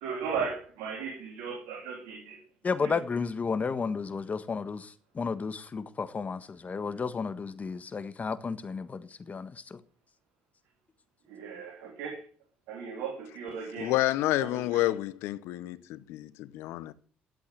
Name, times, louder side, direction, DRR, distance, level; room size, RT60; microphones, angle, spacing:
voice 1, 0.0-2.4 2.8-2.9 11.3-12.2 12.7-13.9 14.4-14.9, right 6 dB, 80° right, 3.1 m, -36 dB
voice 2, 2.6-9.8, left 5 dB, 35° left, 1.5 m, -33 dB
voice 3, 13.8-16.9, left 16 dB, 80° left, 0.8 m, -29 dB
12.0 x 8.2 x 7.8 m
supercardioid pair, 65°, 4 cm